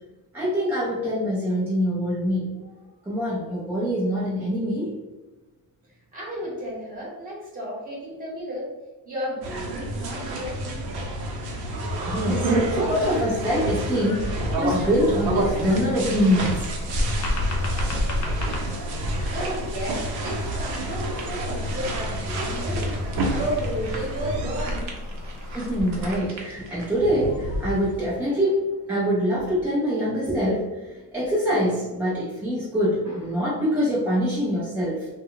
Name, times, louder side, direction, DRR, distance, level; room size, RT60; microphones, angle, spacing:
voice 1, 0.3-2.7 3.0-4.9 11.7-16.7 25.5-35.1, equal, 5° right, -9 dB, 0.3 m, -24 dB
voice 2, 6.1-8.7 9.0-10.9 19.3-22.9 23.3-24.9, equal, 20° right, -5 dB, 0.9 m, -33 dB
sound 1, 9.4-24.8, right 1 dB, 85° right, 0.7 m, -29 dB
sound 2, 14.2-28.1, equal, 50° right, 0.6 m, -37 dB
sound 3, 14.8-26.2, left 1 dB, 50° left, 0.6 m, -32 dB
2.1 x 2.0 x 3.7 m, 1.2 s
cardioid pair, 175°, 37 cm